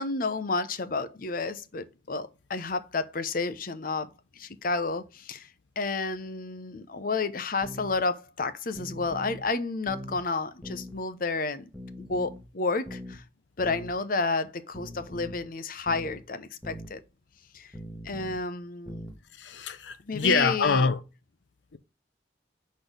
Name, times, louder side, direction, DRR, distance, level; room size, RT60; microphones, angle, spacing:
voice 1, 0.0-4.1 4.4-5.5 5.8-11.7 12.1-13.2 13.6-17.0 17.5-17.7 18.0-19.1 20.1-20.9, left 3 dB, 50° left, 0.7 m, -31 dB
sound 1, 7.6-7.9 8.7-9.5 9.9-10.2 10.6-11.0 11.7-12.5 12.9-13.2 13.6-14.0 14.7-15.4 15.9-16.2 16.6-16.9 17.7-18.4 18.9-19.2, equal, 5° left, 1.3 m, -41 dB
voice 2, 19.3-21.0 21.7-21.8, left 4 dB, 90° left, 0.7 m, -25 dB
6.2 x 4.2 x 5.1 m
head